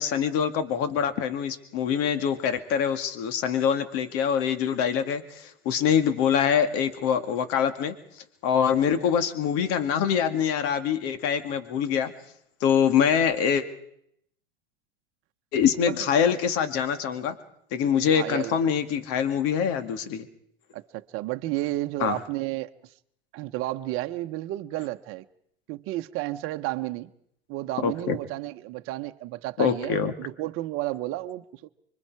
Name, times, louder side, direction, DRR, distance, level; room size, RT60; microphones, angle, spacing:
voice 1, 0.0-8.0 8.4-12.1 12.6-13.6 15.5-17.3 17.7-20.3 22.0-22.2 27.8-28.2 29.6-30.1, left 8 dB, 50° left, 2.2 m, -24 dB
voice 2, 15.8-16.1 17.9-18.6 20.7-22.7 23.3-25.2 25.7-27.1 27.5-31.7, right 16 dB, 45° right, 1.1 m, -32 dB
25.5 x 23.5 x 4.8 m
hypercardioid pair, 105°, 31 cm